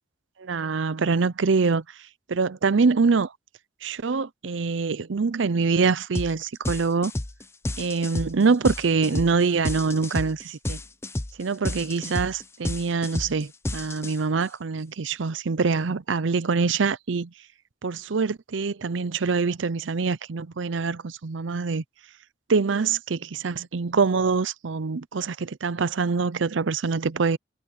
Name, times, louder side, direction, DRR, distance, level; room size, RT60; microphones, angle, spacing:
voice 1, 0.4-1.8 2.3-3.3 3.8-7.1 7.8-10.8 11.4-17.3 17.8-21.8 22.5-27.4, right 4 dB, 75° right, 0.6 m, -24 dB
sound 1, 6.1-6.3 6.6-14.4, left 1 dB, 15° left, 0.6 m, -31 dB
head